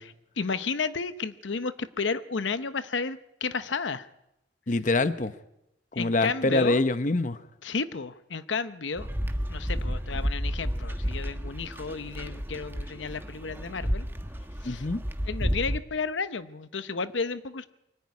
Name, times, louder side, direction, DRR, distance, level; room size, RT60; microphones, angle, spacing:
voice 1, 0.0-4.1 6.0-6.8 7.6-9.1 9.5-14.1 14.6-14.8 15.3-17.7, left 4 dB, 85° left, 13 dB, 0.8 m, -32 dB
voice 2, 4.7-5.3 5.9-7.4 14.6-15.0, left 2 dB, 45° left, 13 dB, 0.8 m, -25 dB
sound 1, 9.0-15.8, equal, 10° right, 1.2 m, -31 dB
23.5 x 14.5 x 9.6 m, 0.87 s
head